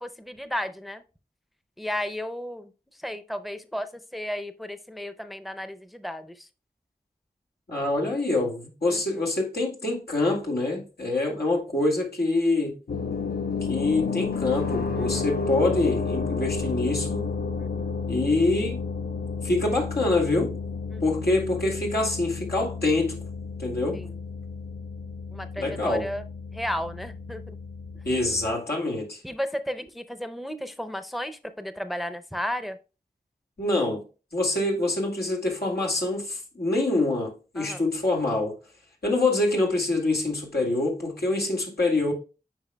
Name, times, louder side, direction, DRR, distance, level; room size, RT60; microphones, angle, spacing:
voice 1, 0.0-1.0 1.8-2.7 3.0-6.5 8.9-9.2 15.0-15.3 17.6-17.9 20.9-21.0 23.9-24.1 25.3-26.2 26.5-27.6 29.2-32.8 37.6-37.8, equal, ahead, 0.5 m, -34 dB
voice 2, 7.7-12.7 13.7-17.3 18.1-18.8 19.4-20.5 21.0-23.2 23.6-24.0 25.6-26.0 28.0-29.2 33.6-34.0 34.3-38.5 39.0-42.1, left 2 dB, 90° left, 2.1 m, -25 dB
sound 1, 12.9-28.5, left 5 dB, 75° left, 0.5 m, -31 dB
8.9 x 5.0 x 2.2 m
wide cardioid pair, 45°, 16 cm